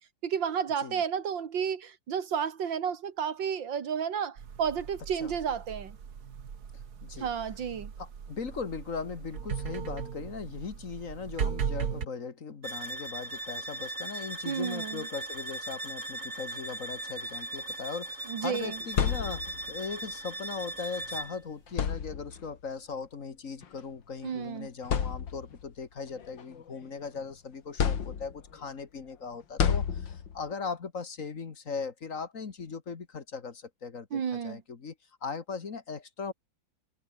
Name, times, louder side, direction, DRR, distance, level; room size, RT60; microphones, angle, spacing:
voice 1, 0.2-6.0 7.2-7.9 14.5-15.1 18.3-18.8 24.2-24.7 34.1-34.6, right 7 dB, 85° right, 2.5 m, -32 dB
sound 1, 4.4-12.0, right 7 dB, 60° right, 2.1 m, -37 dB
voice 2, 7.0-7.3 8.0-34.9 35.2-36.3, left 5 dB, 45° left, 1.9 m, -39 dB
sound 2, 12.6-21.4, right 2 dB, 40° right, 7.6 m, -39 dB
sound 3, 18.6-19.8 21.0-21.2 21.7-22.5 23.6-23.8 24.3-24.4 24.8-25.7 26.2-27.2 27.8-28.6 29.6-30.5, left 7 dB, 80° left, 2.5 m, -30 dB
omnidirectional pair, 2.0 m